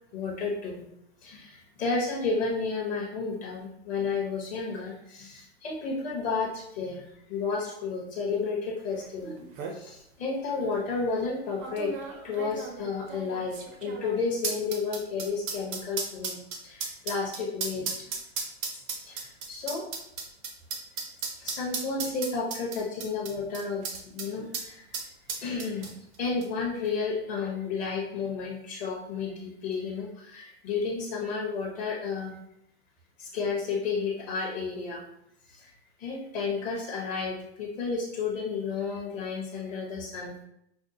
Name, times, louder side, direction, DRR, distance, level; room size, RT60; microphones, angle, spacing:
voice 1, 0.1-0.9 1.2-11.9 12.2-18.1 19.0-19.8 21.4-25.0 25.4-25.9 26.2-32.4 33.2-35.0 35.5-35.7 36.0-40.4, left 4 dB, 25° left, -1 dB, 0.6 m, -32 dB
sound 1, 9.0-9.1 9.4-9.8 10.5-10.7 11.6-24.3 24.5-24.7 24.9-26.1 26.4-26.5, right 5 dB, 30° right, 0.5 m, -35 dB
5.1 x 2.1 x 2.6 m, 0.77 s
hypercardioid pair, 145°, 32 cm